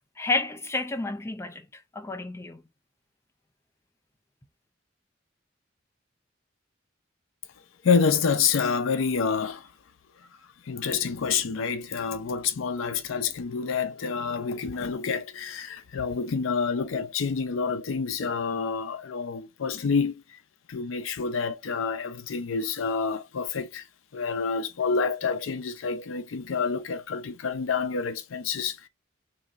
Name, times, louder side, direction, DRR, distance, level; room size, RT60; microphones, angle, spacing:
voice 1, 0.2-1.7 1.9-2.6, left 3 dB, 15° left, 0.4 m, -30 dB
voice 2, 7.8-9.7 10.6-20.4 20.7-23.8 24.1-28.9, left 5 dB, 85° left, 0.5 m, -28 dB
3.1 x 2.6 x 3.5 m
head